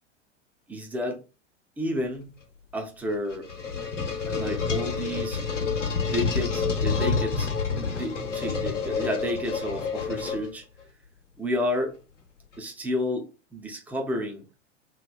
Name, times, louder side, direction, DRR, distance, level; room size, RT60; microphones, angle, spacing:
voice 1, 0.7-1.2 1.8-2.3 2.7-3.5 4.2-5.4 6.0-7.5 7.9-10.6 11.4-12.0 12.6-14.5, left 1 dB, 5° right, 0.5 m, -31 dB
sound 1, 3.1-10.8, left 5 dB, 85° left, 0.9 m, -28 dB
3.0 x 2.9 x 2.4 m
figure-of-eight pair, 95°, 36 cm